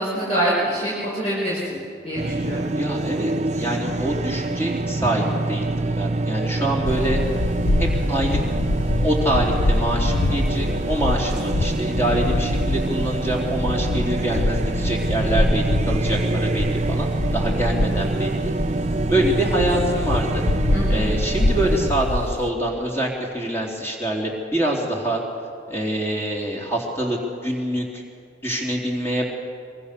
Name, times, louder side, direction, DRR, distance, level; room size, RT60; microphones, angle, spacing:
voice 1, 0.0-1.8 2.0-2.7 20.7-21.0, right 1 dB, 35° left, -7 dB, 5.2 m, -25 dB
sound 1, 2.2-21.9, right 2 dB, 35° right, 0.5 m, -26 dB
voice 2, 2.8-7.2 7.8-8.4 9.0-18.5 19.1-20.4 20.9-25.2 25.7-28.0 28.4-29.3, right 1 dB, 15° left, -2 dB, 3.7 m, -25 dB
sound 2, 6.8-22.5, left 2 dB, 85° left, 0.8 m, -25 dB
24.0 x 23.0 x 6.9 m, 2.3 s
head